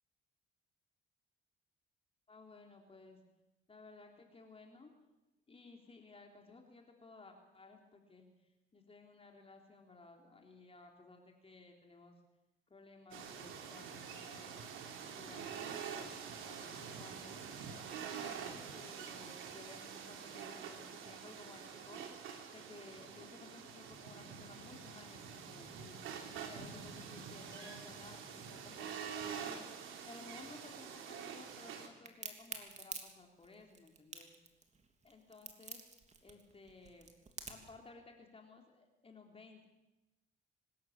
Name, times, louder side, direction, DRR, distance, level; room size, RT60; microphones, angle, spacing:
voice 1, 2.3-3.2 3.7-4.9 5.5-12.2 12.7-14.6 15.0-17.3 17.9-26.0 26.4-34.3 35.0-35.8 36.2-37.1 37.5-39.7, left 3 dB, 30° left, 2 dB, 3.6 m, -57 dB
sound 1, 13.1-31.9, right 7 dB, 90° right, 3.2 m, -46 dB
Crack, 32.1-37.7, right 4 dB, 35° right, 3.2 m, -47 dB
24.5 x 13.0 x 8.9 m, 0.98 s
cardioid pair, 90°, 20 cm